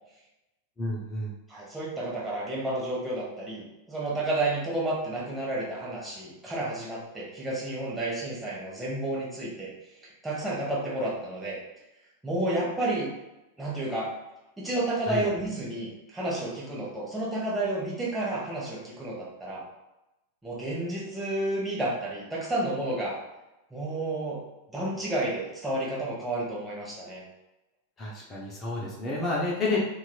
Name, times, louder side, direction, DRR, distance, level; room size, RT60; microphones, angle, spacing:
voice 1, 0.8-1.4 15.1-15.2 28.0-29.8, left 2 dB, 20° left, -4 dB, 0.7 m, -30 dB
voice 2, 1.5-9.7 10.2-11.6 12.2-13.1 13.6-14.1 14.6-19.6 20.4-23.2 23.7-24.4 24.7-27.2, right 1 dB, 5° right, -6 dB, 1.2 m, -31 dB
2.9 x 2.7 x 2.3 m, 0.96 s
figure-of-eight pair, 90°, 0 cm